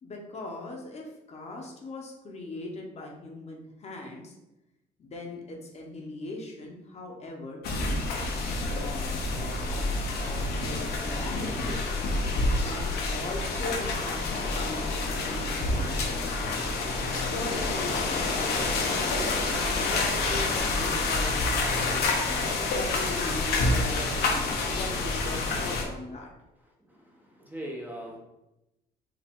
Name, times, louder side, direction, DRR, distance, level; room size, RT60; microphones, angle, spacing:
voice 1, 0.0-4.4 5.0-8.2 8.7-12.0 12.6-16.7 17.3-22.3 22.7-24.5 24.7-26.3, left 2 dB, 40° left, 0 dB, 1.0 m, -40 dB
sound 1, 7.6-25.8, left 3 dB, 70° left, 1.0 m, -28 dB
voice 2, 26.9-28.2, right 1 dB, 10° right, -2 dB, 0.9 m, -40 dB
4.9 x 2.7 x 3.6 m, 0.93 s
cardioid pair, 110°, 17 cm